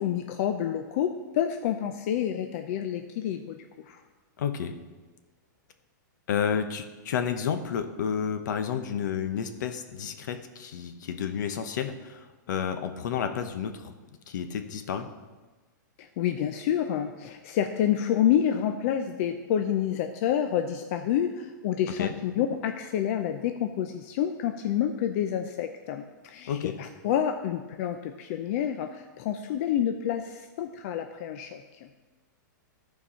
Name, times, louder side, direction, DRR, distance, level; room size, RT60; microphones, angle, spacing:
voice 1, 0.0-3.6 3.9-4.0 16.2-31.9, left 10 dB, 45° left, 6 dB, 0.6 m, -28 dB
voice 2, 4.4-4.8 6.3-13.9 14.3-15.1 22.0-22.1 26.5-26.8, left 7 dB, 70° left, 8 dB, 1.0 m, -31 dB
14.0 x 4.7 x 5.6 m, 1.3 s
hypercardioid pair, 150°, 10 cm